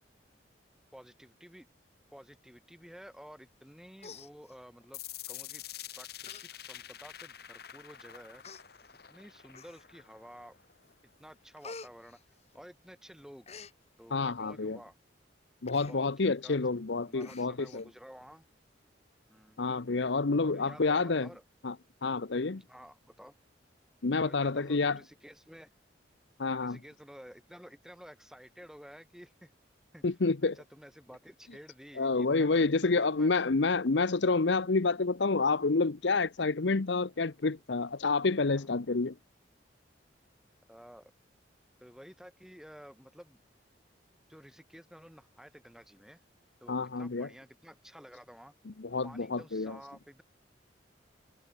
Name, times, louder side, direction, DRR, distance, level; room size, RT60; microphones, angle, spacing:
voice 1, 0.9-1.7 2.1-5.0 5.3-5.6 5.9-8.4 9.1-10.5 11.2-12.2 12.5-13.5 14.0-14.9 15.9-16.6 17.0-18.5 19.3-19.6 20.4-21.4 22.5-23.3 24.2-25.7 26.6-29.5 29.9-30.0 30.4-33.3 38.6-38.7 40.7-41.1 41.8-43.4 44.3-46.2 46.6-48.5 49.0-50.2, equal, 5° right, 4.6 m, -52 dB
Human voice, 3.5-3.7 4.0-4.9 5.7-5.8 6.2-6.5 6.8-6.9 7.7-7.8 8.4-8.6 9.5-10.1 10.6-10.9 11.2-12.9 13.2-13.7 15.7-16.0 16.3-16.4 16.7-16.8 17.2-17.8 18.2-18.3, left 4 dB, 35° left, 2.5 m, -49 dB
sound 1, 4.9-10.9, left 12 dB, 55° left, 1.9 m, -47 dB
voice 2, 14.1-14.8 15.6-17.8 19.6-21.3 21.6-21.7 22.0-22.6 24.0-25.0 26.4-26.8 30.0-30.6 32.0-39.1 46.7-47.3 48.8-49.8, left 3 dB, 70° left, 0.8 m, -28 dB
head